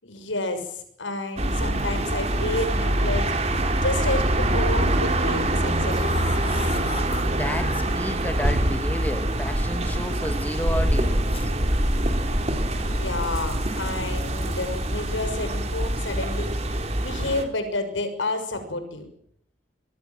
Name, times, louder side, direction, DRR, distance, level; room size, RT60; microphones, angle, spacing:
voice 1, 0.0-3.4 3.8-6.2 12.8-19.1, left 2 dB, 90° left, 6.4 m, -30 dB
sound 1, 1.4-17.4, right 1 dB, 35° right, 3.6 m, -24 dB
sound 2, 4.9-5.1 5.7-7.9 9.0-9.1 9.9-10.0 10.9-11.5 13.4-14.1 14.4-14.7 15.3-15.5 15.9-16.3, left 5 dB, 30° left, 3.9 m, -38 dB
voice 2, 7.4-11.5, equal, 10° left, 2.2 m, -32 dB
26.5 x 21.0 x 7.6 m
head